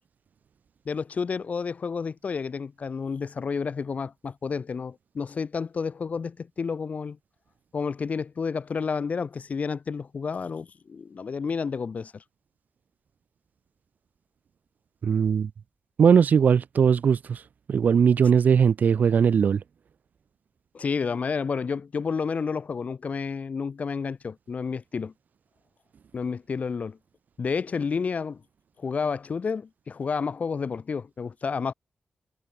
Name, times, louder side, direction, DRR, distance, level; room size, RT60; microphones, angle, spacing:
voice 1, 0.9-7.2 7.7-12.2 20.7-25.1 26.1-27.0 27.4-28.4 28.8-31.7, left 5 dB, 50° left, 1.7 m, -30 dB
voice 2, 15.0-15.5 16.0-17.4 17.7-19.6, right 7 dB, 65° right, 0.4 m, -20 dB
wide cardioid pair, 140°, 3 cm